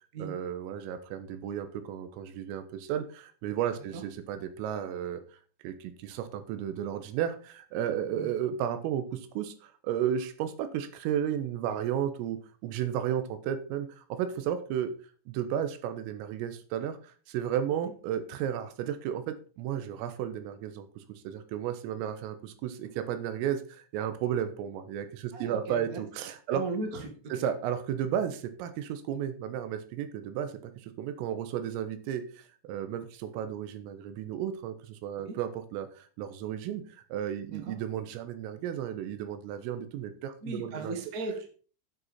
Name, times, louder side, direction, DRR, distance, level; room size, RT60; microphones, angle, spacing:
voice 1, 0.2-5.2 5.6-14.9 15.3-26.6 27.3-36.8 37.1-41.0, right 9 dB, 85° right, 10 dB, 3.8 m, -33 dB
voice 2, 25.3-26.0 26.5-27.3 35.2-35.4 37.5-37.7 40.4-41.5, right 3 dB, 50° right, 3 dB, 1.0 m, -37 dB
9.3 x 8.1 x 5.6 m, 0.41 s
omnidirectional pair, 5.9 m